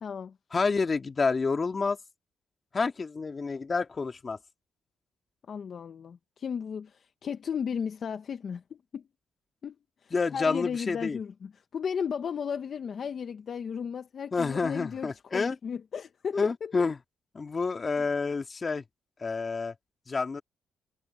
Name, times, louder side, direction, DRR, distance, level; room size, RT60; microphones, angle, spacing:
voice 1, 0.0-0.4 5.5-9.0 9.6-9.8 10.0-16.7, left 7 dB, 50° left, 1.1 m, -35 dB
voice 2, 0.5-2.0 2.7-4.4 10.1-11.2 14.3-15.6 16.3-17.0 17.3-18.8 19.2-19.7 20.1-20.4, left 4 dB, 35° left, 2.1 m, -28 dB
cardioid pair, 90°, 0 cm